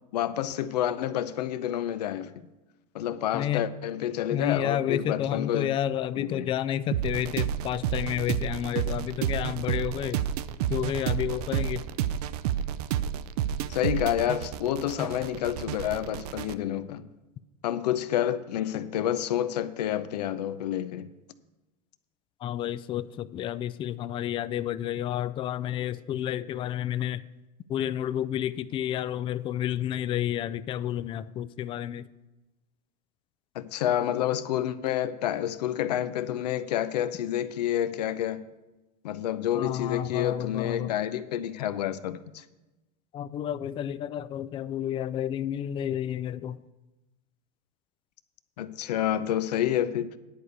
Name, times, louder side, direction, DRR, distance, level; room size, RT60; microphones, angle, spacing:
voice 1, 0.1-2.3 2.9-5.7 6.2-6.4 13.7-17.1 17.6-21.1 33.5-38.4 39.0-42.4 48.6-50.1, left 11 dB, 80° left, 0.7 m, -29 dB
voice 2, 3.3-3.7 4.3-10.2 10.7-11.9 22.4-27.2 27.7-32.1 39.5-40.9 43.1-46.6, left 11 dB, 25° left, 0.3 m, -30 dB
sound 1, 6.9-16.5, right 10 dB, 70° right, 0.5 m, -30 dB
10.5 x 4.8 x 8.1 m
supercardioid pair, 115°, 20 cm